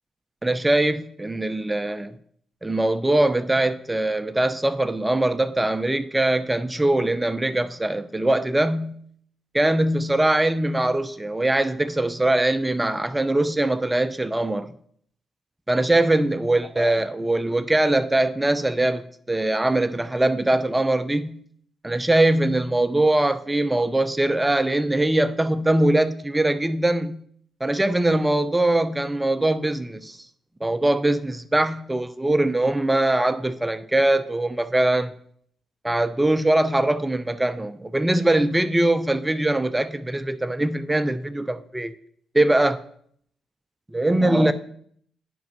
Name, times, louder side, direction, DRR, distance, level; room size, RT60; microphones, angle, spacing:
voice 1, 0.4-2.1 2.6-9.0 9.5-14.7 15.7-21.4 21.8-27.2 27.6-30.2 30.6-35.1 35.8-41.9 42.3-42.8 43.9-44.5, right 1 dB, 15° right, 0.7 m, -22 dB
9.2 x 5.4 x 6.0 m
hypercardioid pair, 45°, 0 cm